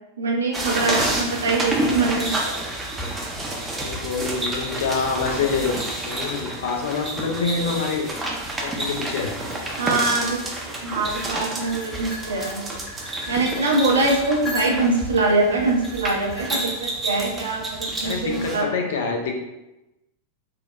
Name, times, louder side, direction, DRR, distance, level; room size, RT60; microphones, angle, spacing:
voice 1, 0.2-2.3 9.8-10.4 10.8-12.6 13.3-18.7, right 3 dB, 70° right, 0 dB, 0.5 m, -23 dB
sound 1, 0.5-18.6, right 1 dB, 15° right, 0.5 m, -29 dB
voice 2, 3.8-8.1 8.6-9.3 18.0-19.4, left 5 dB, 60° left, 1 dB, 0.4 m, -26 dB
sound 2, 11.6-15.1 15.7-16.6, left 1 dB, 10° left, 0.9 m, -37 dB
3.1 x 2.0 x 2.3 m, 0.96 s
figure-of-eight pair, 90°, 0 cm